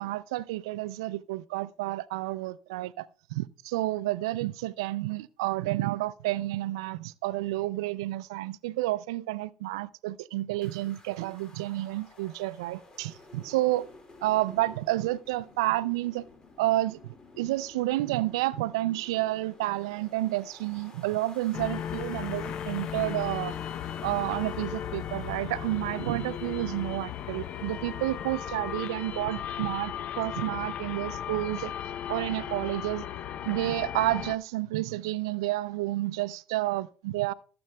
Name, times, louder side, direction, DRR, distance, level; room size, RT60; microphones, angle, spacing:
voice 1, 0.0-3.1 3.7-13.9 14.2-16.2 16.6-23.6 24.0-31.7 32.1-33.1 33.5-37.3, right 17 dB, 90° right, 0.3 m, -30 dB
sound 1, 10.6-29.2, left 3 dB, 30° left, 2.1 m, -54 dB
sound 2, 21.5-34.4, left 9 dB, 55° left, 0.5 m, -36 dB
15.5 x 7.5 x 2.2 m
supercardioid pair, 85°, 3 cm